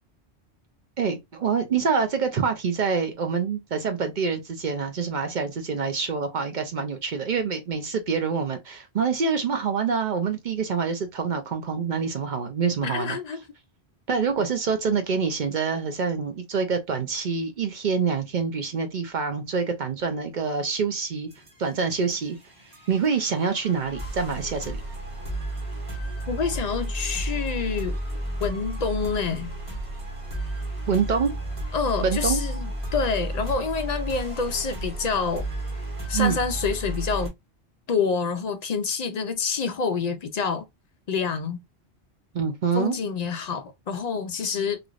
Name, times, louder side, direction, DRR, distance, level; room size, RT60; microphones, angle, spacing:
voice 1, 1.0-13.2 14.1-21.3 21.6-22.4 22.9-24.8 30.9-31.3 32.0-32.4 36.1-36.4 42.3-43.0, right 5 dB, 55° right, 0.6 m, -26 dB
voice 2, 12.8-13.4 26.3-28.0 28.4-29.5 31.7-35.5 36.1-37.3 37.9-40.6 41.1-41.6 42.7-44.8, left 5 dB, 55° left, 0.5 m, -27 dB
sound 1, 21.3-37.3, right 1 dB, 30° right, 1.1 m, -33 dB
3.1 x 2.5 x 2.4 m
omnidirectional pair, 1.1 m